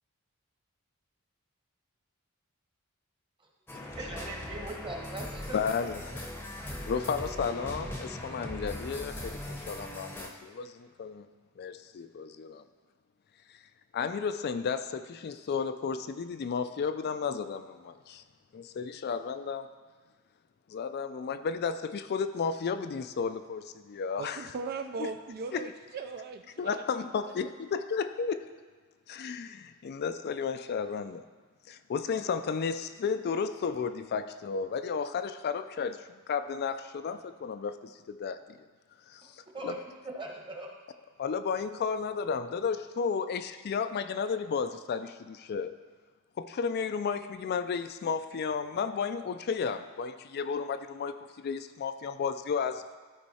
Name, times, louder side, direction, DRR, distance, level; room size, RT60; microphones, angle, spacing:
sound 1, 3.7-10.3, left 1 dB, 10° left, 0.8 m, -40 dB
voice 1, 4.0-5.6 39.2-40.7, right 2 dB, 25° right, 0 dB, 1.2 m, -40 dB
voice 2, 5.5-6.1 6.9-11.3 11.6-12.6 13.9-18.2 18.5-19.7 20.7-24.4 25.5-25.7 26.6-28.4 29.1-31.2 31.7-38.6 39.1-39.8 41.2-45.8 46.4-52.8, left 6 dB, 50° left, 10 dB, 0.4 m, -33 dB
voice 3, 24.2-26.8 27.3-27.4, right 4 dB, 45° right, 6 dB, 0.3 m, -38 dB
13.5 x 4.6 x 4.2 m, 1.5 s
head